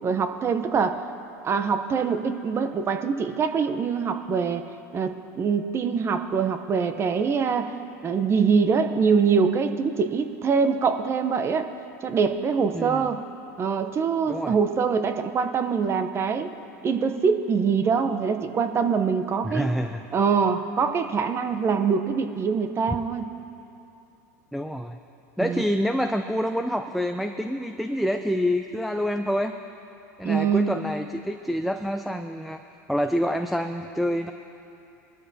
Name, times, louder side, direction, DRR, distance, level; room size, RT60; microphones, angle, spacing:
voice 1, 0.0-1.0 1.4-4.6 4.9-7.8 8.0-11.7 12.0-13.2 13.6-16.5 16.8-19.7 20.1-23.3 25.4-25.6 30.2-30.7, right 5 dB, 30° right, 9 dB, 0.8 m, -24 dB
voice 2, 12.7-13.1 14.3-14.5 19.4-20.0 24.5-25.0 25.4-29.5 30.2-32.6 32.9-34.3, equal, ahead, 6 dB, 0.4 m, -27 dB
21.0 x 13.0 x 2.8 m, 2.8 s
hypercardioid pair, 105°, 9 cm